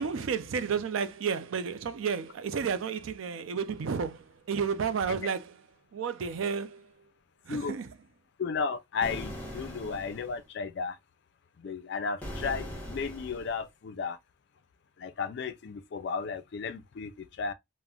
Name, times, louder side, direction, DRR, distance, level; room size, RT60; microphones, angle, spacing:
voice 1, 0.0-5.6 5.9-7.1 7.4-8.0, right 6 dB, 75° right, 0.4 m, -32 dB
voice 2, 8.4-11.0 11.6-14.2 15.0-17.5, left 5 dB, 55° left, 0.4 m, -34 dB
sound 1, 9.0-10.4 12.2-13.6, equal, 5° left, 0.8 m, -40 dB
2.3 x 2.1 x 3.5 m
head